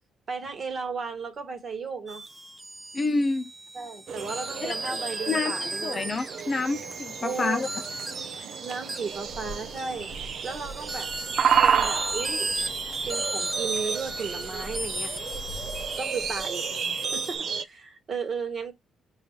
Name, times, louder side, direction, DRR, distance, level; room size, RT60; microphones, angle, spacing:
voice 1, 0.3-2.2 3.7-6.1 7.2-7.7 8.6-10.1 10.4-11.1 11.6-12.5 13.0-15.2 16.0-16.7 17.1-18.7, right 5 dB, 45° right, 1.6 m, -34 dB
sound 1, 2.1-17.4, right 2 dB, 20° right, 0.9 m, -35 dB
voice 2, 2.9-3.5 4.6-4.9 5.3-7.7, left 3 dB, 35° left, 0.6 m, -28 dB
sound 2, 4.1-17.6, right 7 dB, 60° right, 0.6 m, -31 dB
Wind, 9.1-16.8, equal, 50° left, 1.0 m, -45 dB
5.2 x 2.5 x 3.1 m
cardioid pair, 90°, 0 cm